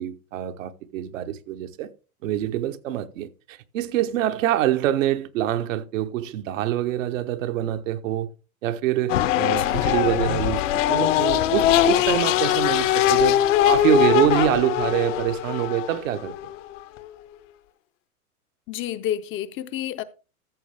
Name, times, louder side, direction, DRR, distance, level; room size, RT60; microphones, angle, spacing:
voice 1, 0.0-1.9 2.2-8.3 8.6-16.5, right 12 dB, 65° right, 1.1 m, -25 dB
sound 1, 9.1-17.0, left 13 dB, 60° left, 1.0 m, -21 dB
voice 2, 9.5-9.8 18.7-20.0, left 11 dB, 30° left, 0.6 m, -30 dB
14.0 x 6.5 x 3.3 m
hypercardioid pair, 110°, 42 cm